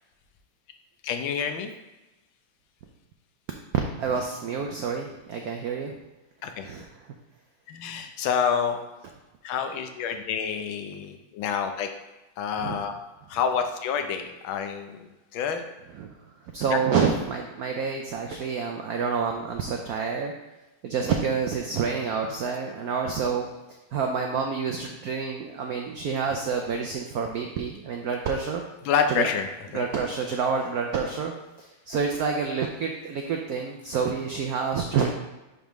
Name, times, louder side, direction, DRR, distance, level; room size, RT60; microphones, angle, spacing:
voice 1, 1.0-1.7 6.4-6.7 7.7-8.8 9.4-11.9 12.4-12.9 13.3-15.6 16.7-16.8 28.8-29.9, left 7 dB, 80° left, 6 dB, 1.5 m, -28 dB
voice 2, 4.0-5.9 6.6-6.9 12.6-12.8 15.9-16.1 16.5-20.3 20.8-23.5 23.9-28.6 29.1-29.3 29.7-31.3 31.6-35.1, right 5 dB, 85° right, 3 dB, 0.8 m, -28 dB
10.0 x 3.5 x 3.1 m, 1.1 s
omnidirectional pair, 2.2 m